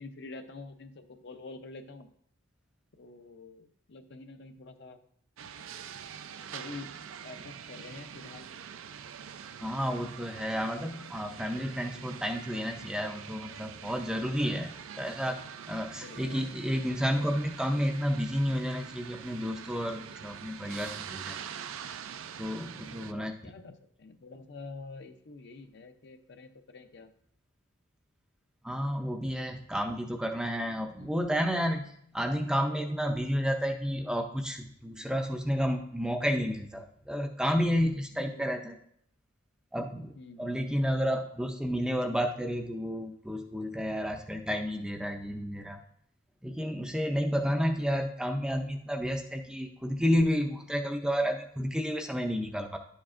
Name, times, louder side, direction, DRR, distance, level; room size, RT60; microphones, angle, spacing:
voice 1, 0.0-2.1 3.0-5.0 6.5-6.9 7.2-8.5 16.0-16.4 22.8-27.1 31.0-31.2 38.3-38.6 40.2-40.7, left 3 dB, 55° left, 7 dB, 0.6 m, -47 dB
sound 1, 5.4-23.1, right 7 dB, 80° right, 0.4 m, -44 dB
voice 2, 9.6-15.4 15.7-21.4 22.4-23.3 28.6-38.8 39.7-40.1 40.4-45.8 46.4-52.8, equal, 5° right, 4 dB, 0.4 m, -31 dB
11.0 x 7.2 x 2.5 m, 0.67 s
head